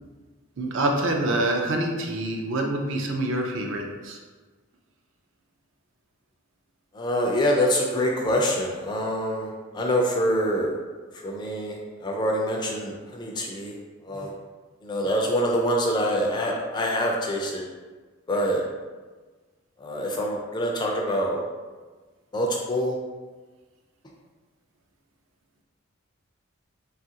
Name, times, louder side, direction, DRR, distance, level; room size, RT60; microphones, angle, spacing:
voice 1, 0.6-4.2, right 1 dB, 60° right, 2 dB, 0.4 m, -26 dB
voice 2, 6.9-10.7 11.2-13.7 14.0-14.3 14.8-17.6 18.3-18.6 19.8-21.4 22.3-22.9, equal, 20° left, 0 dB, 0.3 m, -25 dB
3.1 x 2.4 x 2.7 m, 1.3 s
head